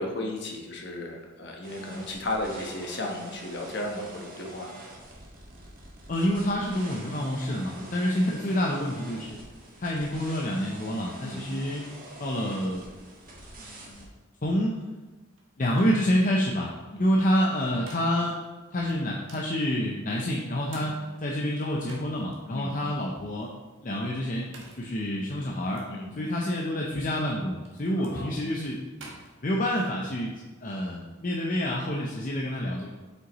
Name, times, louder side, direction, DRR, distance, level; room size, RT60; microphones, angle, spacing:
voice 1, 0.0-4.7 7.7-7.9 11.2-11.4 16.9-17.1 20.7-20.9 22.5-22.7 25.9-26.1 28.0-28.4, left 1 dB, 55° left, 1 dB, 1.2 m, -34 dB
sound 1, 1.6-14.1, right 1 dB, 40° right, 1.6 m, -46 dB
voice 2, 6.1-9.4 9.8-11.9 12.2-12.9 13.5-14.1 14.4-14.8 15.6-16.7 17.0-18.3 18.7-20.9 21.2-23.5 23.8-24.5 24.8-25.8 26.2-28.8 29.4-30.3 30.6-32.9, equal, 40° left, -2 dB, 0.6 m, -28 dB
sound 2, 15.4-15.5 15.8-16.0 17.4-18.3 18.9-19.5 20.3-22.4 22.9-23.0 24.2-24.9 25.7-25.9 27.1-29.8, right 2 dB, 70° right, 1.4 m, -50 dB
7.8 x 5.6 x 3.0 m, 1.2 s
head